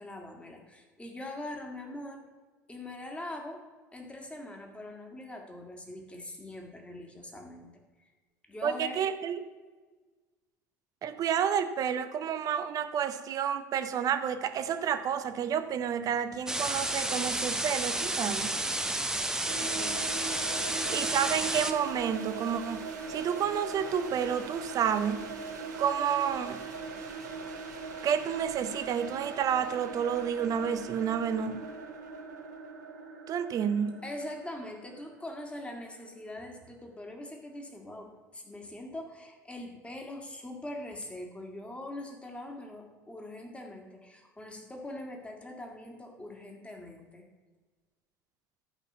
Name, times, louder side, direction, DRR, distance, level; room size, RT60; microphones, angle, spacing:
voice 1, 0.0-2.2 2.7-3.6 3.9-7.7 8.0-8.1 8.5-9.1 19.6-20.1 20.7-20.8 34.0-47.3, left 1 dB, 10° left, 2 dB, 2.0 m, -42 dB
voice 2, 8.6-9.5 11.0-18.5 20.9-25.3 25.8-26.6 28.0-31.6 33.3-34.0, right 8 dB, 40° right, 10 dB, 0.8 m, -30 dB
sound 1, 16.5-21.7, right 1 dB, 5° right, 0.8 m, -31 dB
sound 2, 19.5-36.3, right 4 dB, 70° right, 1.6 m, -41 dB
12.5 x 5.4 x 5.5 m, 1.3 s
figure-of-eight pair, 65°, 10 cm